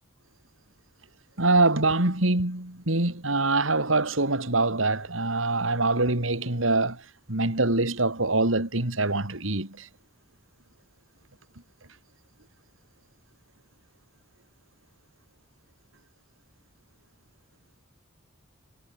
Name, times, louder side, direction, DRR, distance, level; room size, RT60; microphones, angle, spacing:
voice 1, 1.4-9.9, right 2 dB, 85° right, 3.7 m, -24 dB
head